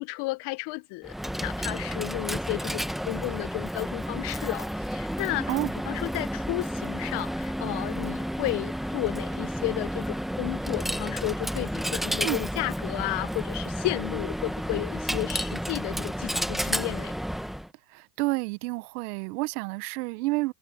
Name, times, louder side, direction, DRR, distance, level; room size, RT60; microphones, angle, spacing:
voice 1, 0.0-5.6 5.9-17.1, left 24 dB, 60° left, 1.0 m, -33 dB
Coin (dropping), 1.0-17.7, equal, ahead, 1.2 m, -31 dB
voice 2, 17.9-20.5, right 23 dB, 70° right, 0.9 m, -29 dB
hypercardioid pair, 90°, 47 cm